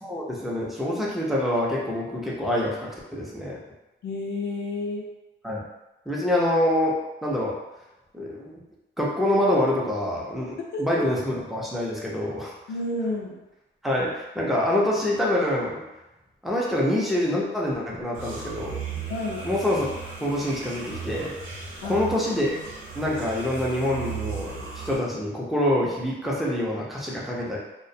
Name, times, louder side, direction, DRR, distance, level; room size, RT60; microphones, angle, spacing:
voice 1, 0.0-3.6 5.4-5.6 6.1-6.9 7.2-7.6 8.1-8.6 9.0-12.5 13.8-15.8 16.4-18.8 19.4-19.9 20.2-21.3 21.8-27.6, left 1 dB, ahead, -5 dB, 0.6 m, -26 dB
voice 2, 4.0-5.1 10.7-11.0 12.7-13.4 19.1-19.5 21.8-22.1, left 2 dB, 55° left, -3 dB, 0.6 m, -30 dB
sound 1, 18.1-25.0, right 5 dB, 80° right, 0.7 m, -36 dB
2.3 x 2.1 x 2.7 m, 1.0 s
cardioid pair, 90°, 20 cm